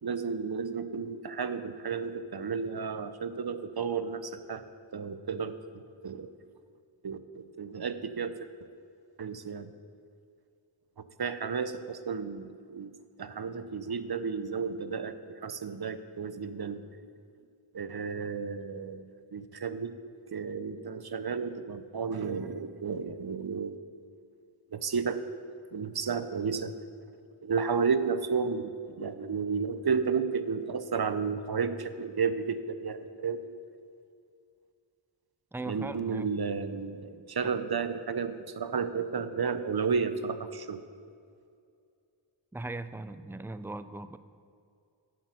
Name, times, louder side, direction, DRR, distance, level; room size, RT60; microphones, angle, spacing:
voice 1, 0.0-4.6 4.9-5.5 6.0-6.3 7.0-8.4 9.2-9.7 11.0-12.9 13.2-16.9 17.7-19.0 19.3-19.9 20.3-23.8 24.7-25.2 25.7-26.8 27.4-33.4 35.6-40.8, right 5 dB, 50° right, 11 dB, 0.6 m, -32 dB
voice 2, 35.5-36.3 37.4-37.5 42.5-44.2, right 2 dB, 5° right, 11 dB, 0.3 m, -39 dB
7.6 x 6.7 x 8.0 m, 2.4 s
wide cardioid pair, 50°, 47 cm